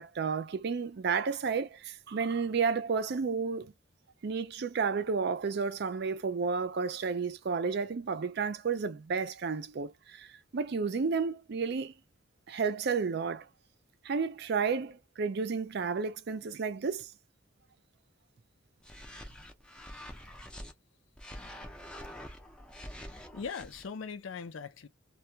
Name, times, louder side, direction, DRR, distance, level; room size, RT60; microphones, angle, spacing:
voice 1, 0.0-3.7 4.2-11.9 12.5-13.5 14.0-17.1, right 5 dB, 55° right, 0.4 m, -32 dB
sound 1, 18.8-20.7 21.2-23.9, equal, 5° left, 0.5 m, -46 dB
voice 2, 23.3-24.9, left 5 dB, 70° left, 0.4 m, -40 dB
2.3 x 2.2 x 2.7 m
head